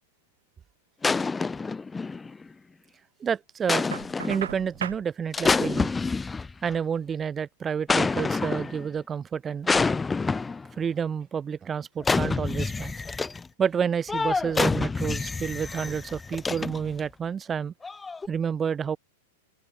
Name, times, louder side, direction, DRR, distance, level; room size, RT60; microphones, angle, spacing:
sound 1, 1.0-2.5 3.7-4.5 5.3-6.7 7.9-8.9 9.7-10.7 12.0-13.5 14.1-17.0 17.8-18.3, left 4 dB, 10° left, 1.0 m, -27 dB
voice 1, 3.2-3.9 4.3-5.9 6.6-9.7 10.8-12.9 13.6-17.7 18.3-19.0, right 7 dB, 20° right, 4.3 m, -29 dB
Knock, 3.9-5.1, right 8 dB, 65° right, 4.6 m, -35 dB
figure-of-eight pair, 95°, 0 cm